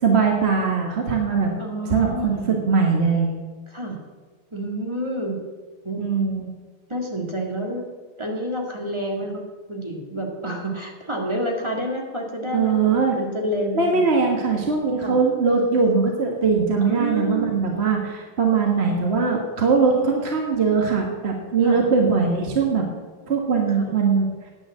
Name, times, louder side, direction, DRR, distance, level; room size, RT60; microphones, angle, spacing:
voice 1, 0.0-1.5 1.9-3.3 6.0-6.5 12.5-13.2 13.7-22.9 23.3-24.5, right 5 dB, 35° right, 1 dB, 1.4 m, -21 dB
voice 2, 1.6-2.5 3.7-4.0 4.5-5.4 5.8-6.0 6.9-7.9 8.2-9.4 9.7-14.2 15.0-15.2 16.8-17.7 21.6-21.8 23.7-23.9, equal, 15° right, 0 dB, 1.7 m, -29 dB
9.9 x 8.9 x 7.5 m, 1.4 s
omnidirectional pair, 2.4 m